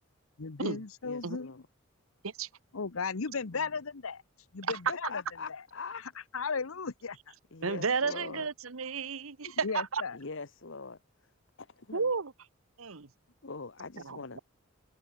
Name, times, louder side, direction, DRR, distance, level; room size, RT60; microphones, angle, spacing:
voice 1, 0.4-1.5 2.7-4.2 4.5-5.2 6.3-7.2 9.4-10.2, left 5 dB, 80° left, 0.9 m, -35 dB
voice 2, 1.0-1.6 3.5-3.7 4.9-6.0 7.5-8.5 10.1-11.0 11.6-12.1 13.4-14.4, left 4 dB, 65° left, 1.4 m, -42 dB
voice 3, 7.6-10.0 11.9-12.3 12.8-13.1 14.0-14.4, right 5 dB, 80° right, 1.1 m, -32 dB
head